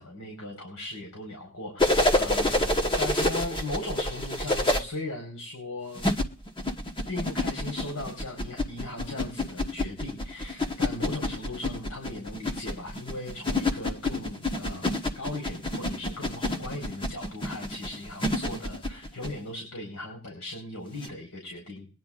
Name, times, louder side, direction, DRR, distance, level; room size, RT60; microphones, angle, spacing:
voice 1, 0.0-6.1 7.1-21.9, left 2 dB, 80° left, 1 dB, 4.5 m, -38 dB
sound 1, 1.8-4.8 6.0-19.3 21.0-21.1, left 1 dB, 25° left, 1.2 m, -28 dB
23.0 x 10.5 x 2.5 m, 0.38 s
head